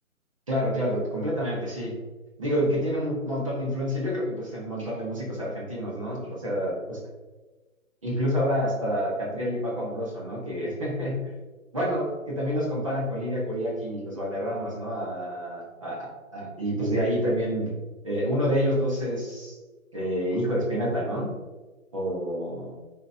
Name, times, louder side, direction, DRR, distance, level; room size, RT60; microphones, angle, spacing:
voice 1, 0.5-2.0 2.4-7.0 8.0-11.3 11.7-16.1 16.3-17.7 18.0-19.5 19.9-21.3 21.9-22.8, equal, 25° right, -4 dB, 1.1 m, -28 dB
9.7 x 4.4 x 2.7 m, 1.2 s
hypercardioid pair, 175°, 41 cm